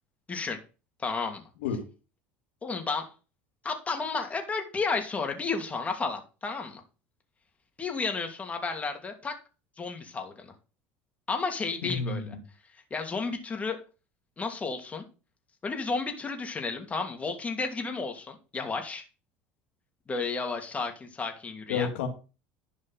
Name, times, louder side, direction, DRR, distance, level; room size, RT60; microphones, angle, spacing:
voice 1, 1.0-1.4 2.6-3.1 3.6-6.8 7.8-9.4 9.8-10.5 11.3-12.4 12.9-13.8 14.4-15.0 15.6-19.0 20.1-21.9, left 4 dB, 25° left, 4 dB, 2.8 m, -32 dB
voice 2, 11.8-12.4 21.7-22.1, left 5 dB, 85° left, 4 dB, 2.1 m, -30 dB
11.5 x 5.3 x 5.8 m, 0.32 s
supercardioid pair, 100°, 6 cm